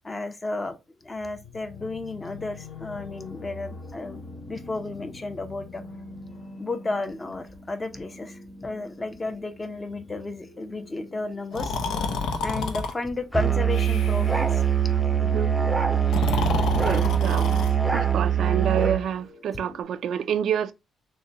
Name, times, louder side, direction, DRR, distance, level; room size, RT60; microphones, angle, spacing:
voice 1, 0.0-5.8 6.6-11.8 12.4-14.6 16.3-16.5, left 2 dB, 25° left, 0.7 m, -33 dB
sound 1, 1.2-19.8, left 2 dB, 65° left, 1.8 m, -44 dB
Breathing, 11.5-12.9 13.7-14.4 16.0-17.8, left 4 dB, 80° left, 0.7 m, -29 dB
Musical instrument, 13.3-19.0, right 8 dB, 15° right, 0.6 m, -23 dB
voice 2, 15.2-15.6 16.7-17.7 17.9-20.7, right 9 dB, 70° right, 0.3 m, -28 dB
6.3 x 2.2 x 2.8 m
cardioid pair, 95°, 0 cm